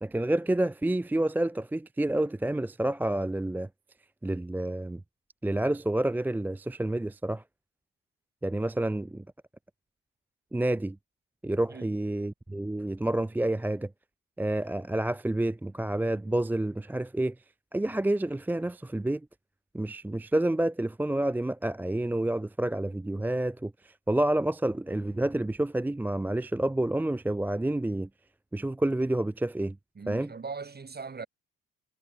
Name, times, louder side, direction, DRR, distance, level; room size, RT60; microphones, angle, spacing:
voice 1, 0.0-3.7 4.2-5.0 5.4-7.4 8.4-9.2 10.5-11.0 11.4-13.9 14.4-17.3 17.7-19.2 19.7-28.1 28.5-29.8 30.1-30.3, right 1 dB, 5° right, 0.4 m, -29 dB
voice 2, 30.0-31.3, right 5 dB, 25° right, 2.2 m, -39 dB
hypercardioid pair, 50°, 35 cm